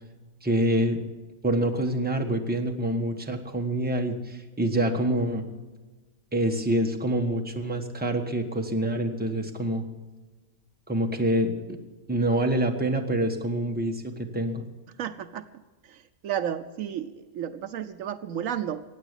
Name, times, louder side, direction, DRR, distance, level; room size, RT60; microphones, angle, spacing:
voice 1, 0.4-1.0 1.4-5.5 6.3-9.8 10.9-11.8 12.1-14.6, right 1 dB, 5° right, 3 dB, 1.1 m, -26 dB
voice 2, 15.0-15.5 15.8-18.8, right 9 dB, 70° right, 11 dB, 1.0 m, -32 dB
16.0 x 9.0 x 8.2 m, 1.3 s
omnidirectional pair, 1.5 m